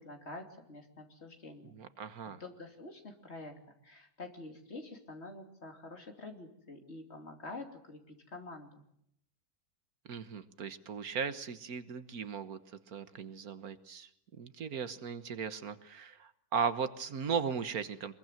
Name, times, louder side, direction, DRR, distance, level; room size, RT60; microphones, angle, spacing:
voice 1, 0.0-1.8 2.2-3.5 3.8-8.8, left 2 dB, 45° left, 4 dB, 3.2 m, -47 dB
voice 2, 1.7-2.4 10.1-12.6 12.9-14.1 14.4-18.1, right 6 dB, 70° right, 12 dB, 1.7 m, -37 dB
23.5 x 22.0 x 9.1 m, 0.74 s
omnidirectional pair, 1.6 m